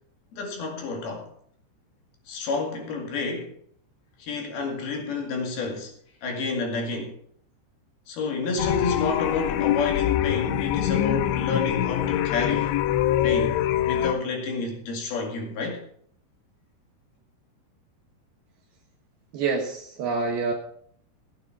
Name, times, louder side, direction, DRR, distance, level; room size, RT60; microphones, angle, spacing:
voice 1, 0.3-1.3 2.3-3.5 4.2-5.9 6.2-7.1 8.1-12.8 13.2-13.6 13.8-15.8, left 4 dB, 65° left, 3.9 m, -29 dB
sound 1, 8.6-14.1, left 12 dB, 90° left, 3.0 m, -24 dB
voice 2, 19.3-20.5, right 4 dB, 70° right, 3.0 m, -27 dB
15.0 x 9.0 x 4.7 m
omnidirectional pair, 5.1 m